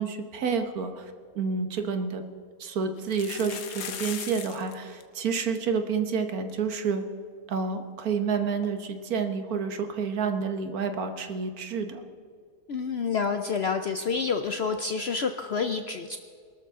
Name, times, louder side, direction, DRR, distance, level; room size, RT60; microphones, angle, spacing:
voice 1, 0.0-2.2 2.6-7.0 7.5-12.0, right 5 dB, 65° right, 7 dB, 1.5 m, -29 dB
sound 1, 1.4-1.5 1.8-1.9 3.0-4.7 5.0-5.1 5.3-5.6 6.1-6.2 6.5-6.6 8.6-8.7, left 7 dB, 85° left, 1.6 m, -38 dB
voice 2, 12.7-16.2, left 5 dB, 60° left, 7 dB, 0.7 m, -28 dB
23.0 x 13.0 x 3.7 m, 2.1 s
omnidirectional pair, 1.7 m